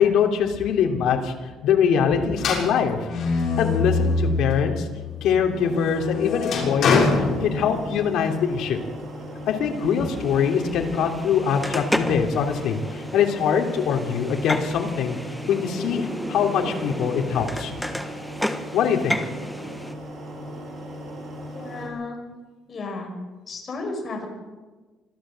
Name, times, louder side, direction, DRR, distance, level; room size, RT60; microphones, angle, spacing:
voice 1, 0.0-1.3 1.6-3.0 3.6-4.9 5.2-8.8 9.5-15.2 15.5-17.7 18.7-19.2, left 7 dB, 65° left, 3 dB, 3.2 m, -23 dB
sound 1, 2.4-4.8 5.2-8.1, left 4 dB, 45° left, 7.0 m, -24 dB
sound 2, 6.7-21.9, equal, 35° right, 6.9 m, -37 dB
sound 3, 9.7-19.9, equal, ahead, 1.4 m, -33 dB
voice 2, 21.5-22.2 22.7-23.1 23.5-24.3, left 3 dB, 30° left, 2 dB, 5.6 m, -33 dB
25.5 x 15.0 x 7.8 m, 1.3 s
cardioid pair, 170°, 0 cm